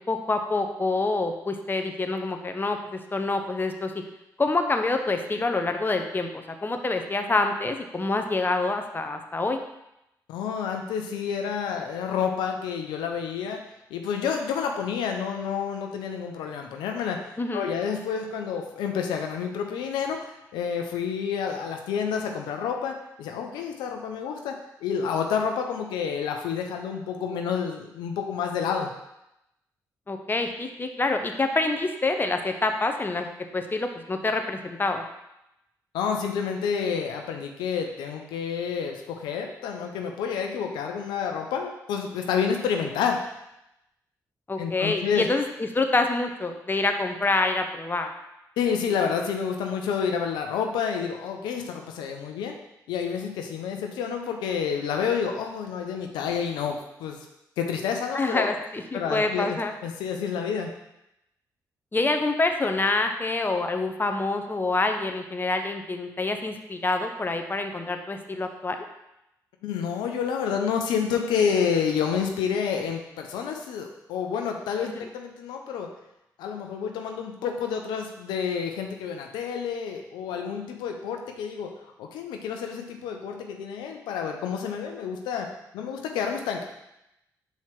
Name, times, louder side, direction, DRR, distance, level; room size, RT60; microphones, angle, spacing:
voice 1, 0.1-3.9 4.4-9.6 17.4-17.6 30.1-33.3 33.5-35.0 44.5-48.1 58.1-59.7 61.9-68.8 74.8-75.0, left 3 dB, 25° left, 5 dB, 0.9 m, -26 dB
voice 2, 10.3-13.6 13.9-17.2 17.5-28.9 35.9-43.2 44.6-45.3 48.6-52.5 52.9-57.2 57.6-58.5 58.9-60.7 69.6-75.9 76.4-81.7 82.0-85.5 85.7-86.6, left 7 dB, 90° left, 3 dB, 0.6 m, -29 dB
5.7 x 4.5 x 4.6 m, 0.87 s
supercardioid pair, 55°, 8 cm